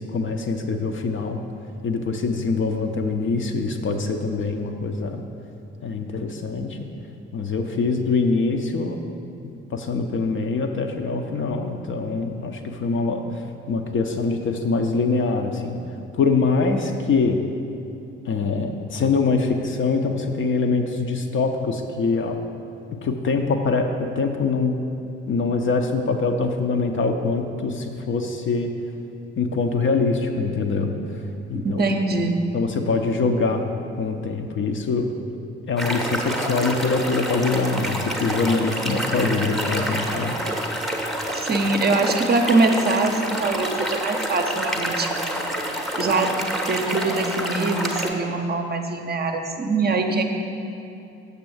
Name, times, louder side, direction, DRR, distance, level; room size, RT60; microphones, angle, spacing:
voice 1, 0.0-1.4 1.8-5.2 5.8-6.9 7.3-9.0 9.4-13.2 13.7-15.8 16.1-17.4 18.3-22.4 23.0-24.7 25.3-28.7 29.4-30.9 31.5-31.8 32.5-33.7 34.0-35.1 35.7-40.4, left 4 dB, 35° left, 5 dB, 0.6 m, -24 dB
voice 2, 31.5-32.4 41.3-45.2 46.0-46.3 46.7-50.2, right 3 dB, 30° right, 4 dB, 0.7 m, -23 dB
sound 1, 35.8-48.1, right 1 dB, ahead, 0.8 m, -28 dB
6.8 x 6.8 x 4.7 m, 2.8 s
figure-of-eight pair, 45°, 33 cm